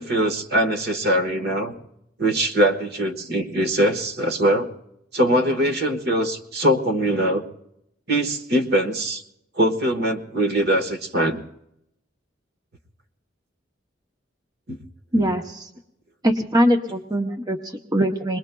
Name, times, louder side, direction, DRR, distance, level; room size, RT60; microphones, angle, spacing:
voice 1, 0.0-1.7 2.2-4.7 5.1-7.4 8.1-9.2 9.6-11.4 14.7-14.8 15.1-15.2, right 1 dB, 60° right, 6 dB, 1.4 m, -22 dB
voice 2, 15.1-15.7 16.2-18.4, equal, 20° right, 3 dB, 0.8 m, -22 dB
27.5 x 21.0 x 2.3 m, 0.79 s
head